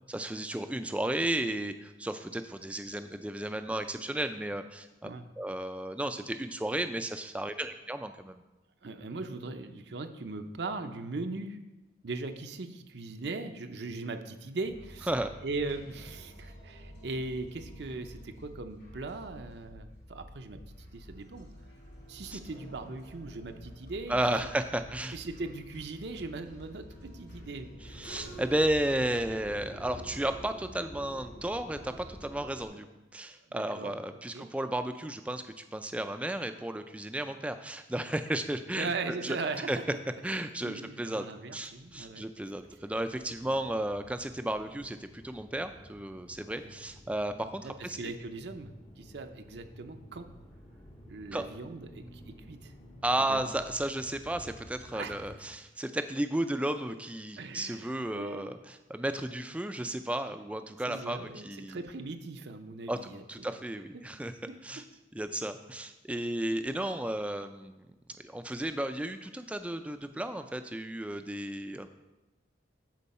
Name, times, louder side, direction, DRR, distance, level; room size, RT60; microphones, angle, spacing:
voice 1, 0.1-5.1 5.4-8.4 15.1-15.3 22.3-22.4 24.1-25.2 27.9-32.8 33.1-38.9 39.2-39.4 39.7-39.8 40.2-41.3 41.5-48.1 51.3-51.4 53.0-61.8 62.9-63.0 63.3-64.3 64.6-64.8 65.1-67.9 68.2-71.9, right 1 dB, 5° right, 9 dB, 0.3 m, -33 dB
voice 2, 8.8-11.6 12.0-15.1 15.4-21.5 22.1-24.2 25.1-28.1 33.2-34.0 34.3-34.5 38.8-39.8 40.4-42.2 43.4-43.6 46.5-46.7 47.6-50.3 51.1-52.7 53.2-53.5 54.9-55.3 57.4-58.5 60.9-63.5 63.9-64.0 64.5-64.6, right 3 dB, 65° right, 6 dB, 0.6 m, -39 dB
sound 1, 14.6-32.7, equal, 60° left, 2.5 m, -48 dB
sound 2, 41.6-55.4, equal, 35° left, 0.8 m, -53 dB
12.0 x 4.6 x 4.2 m, 1.0 s
head